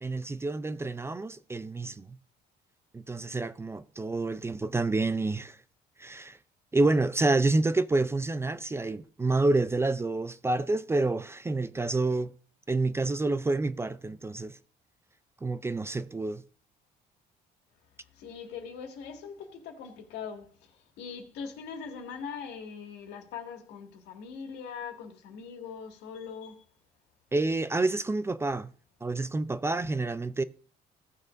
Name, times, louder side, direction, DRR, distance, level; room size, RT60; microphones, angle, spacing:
voice 1, 0.0-2.2 2.9-5.6 6.0-6.4 6.7-12.3 12.7-14.6 15.4-16.4 27.3-28.7 29.0-30.4, right 2 dB, 15° right, 0.4 m, -28 dB
voice 2, 18.2-20.5 21.0-26.6, left 6 dB, 90° left, 2.0 m, -41 dB
16.5 x 6.5 x 2.5 m
cardioid pair, 110°, 17 cm